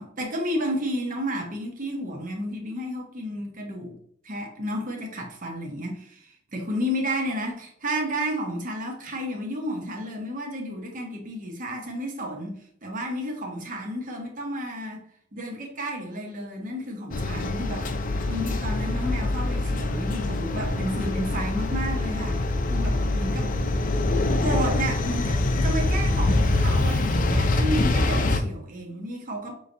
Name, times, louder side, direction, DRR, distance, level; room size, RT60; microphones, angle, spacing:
voice 1, 0.0-4.0 4.2-15.0 15.3-22.4 22.7-23.5 24.4-29.5, equal, 45° right, 1 dB, 1.1 m, -32 dB
sound 1, 17.1-28.4, left 2 dB, 45° left, 0.5 m, -24 dB
5.5 x 3.2 x 2.6 m, 0.64 s
head